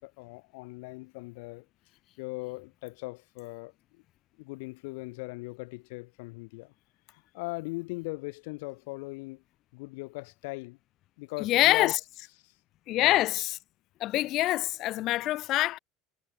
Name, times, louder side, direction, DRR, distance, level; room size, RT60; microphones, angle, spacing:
voice 1, 0.0-1.6 2.2-4.0 4.4-6.7 7.1-9.4 9.7-10.8 11.2-11.9 12.4-12.5 13.0-13.2, left 26 dB, 80° left, 2.9 m, -39 dB
voice 2, 11.4-12.0 12.9-13.6 14.0-15.8, left 16 dB, 50° left, 2.0 m, -25 dB
supercardioid pair, 130°, 0 cm